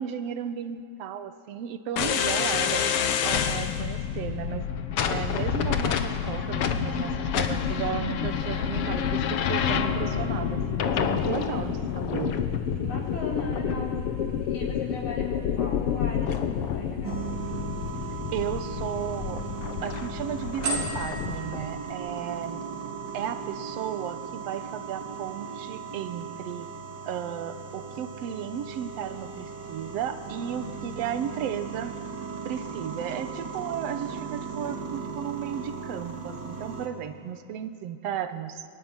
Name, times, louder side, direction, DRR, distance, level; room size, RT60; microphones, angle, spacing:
voice 1, 0.0-2.9 3.2-4.6 5.1-12.4 18.3-19.4 19.8-22.6 23.1-26.7 27.1-31.9 32.5-38.7, right 9 dB, 60° right, 10 dB, 1.8 m, -34 dB
sound 1, 2.0-21.7, left 8 dB, 65° left, 1.5 m, -28 dB
sound 2, 8.2-21.3, right 2 dB, 90° right, 5.5 m, -43 dB
voice 2, 11.7-12.2 12.8-14.0 14.5-17.2 33.7-33.9, left 3 dB, 80° left, -3 dB, 6.0 m, -38 dB
sound 3, 17.0-36.9, right 5 dB, 40° right, 2.1 m, -37 dB
24.0 x 23.0 x 9.7 m, 2.6 s
omnidirectional pair, 3.7 m